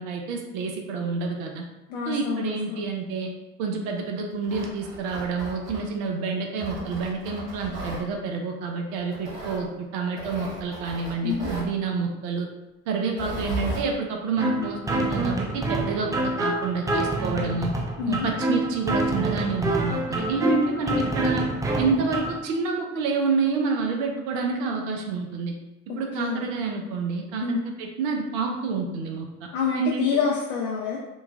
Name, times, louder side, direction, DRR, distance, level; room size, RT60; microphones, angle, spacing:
voice 1, 0.0-1.7 2.1-3.3 3.6-12.5 12.9-17.7 18.1-21.5 21.8-25.5 26.0-29.3 29.7-30.1, right 4 dB, 60° right, 2 dB, 0.5 m, -28 dB
voice 2, 1.9-2.8 11.2-11.5 18.0-18.3 26.2-26.5 27.4-27.6 29.5-31.0, left 5 dB, 55° left, -2 dB, 0.5 m, -27 dB
Tearing, 4.3-6.1 6.6-8.0 9.1-9.6 10.2-11.7 13.1-13.9, right 2 dB, 80° right, 1.3 m, -35 dB
sound 1, 14.4-22.4, right 1 dB, 10° right, 0.4 m, -27 dB
3.0 x 2.2 x 2.4 m, 0.99 s
figure-of-eight pair, 55°, 39 cm